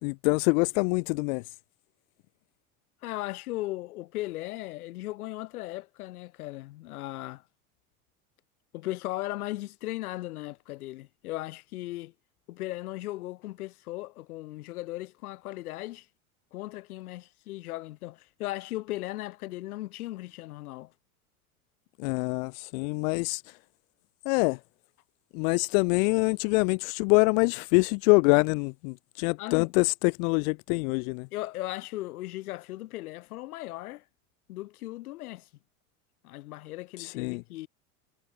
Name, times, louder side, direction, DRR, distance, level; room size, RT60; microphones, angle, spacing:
voice 1, 0.0-1.4 22.0-23.4 24.3-24.6 25.3-31.3 37.0-37.4, left 33 dB, 65° left, 0.6 m, -25 dB
voice 2, 3.0-7.4 8.7-12.1 12.5-16.1 16.5-20.9 29.4-29.7 31.3-34.0 34.5-35.5 36.2-37.7, left 17 dB, 80° left, 3.1 m, -37 dB
supercardioid pair, 100°, 43 cm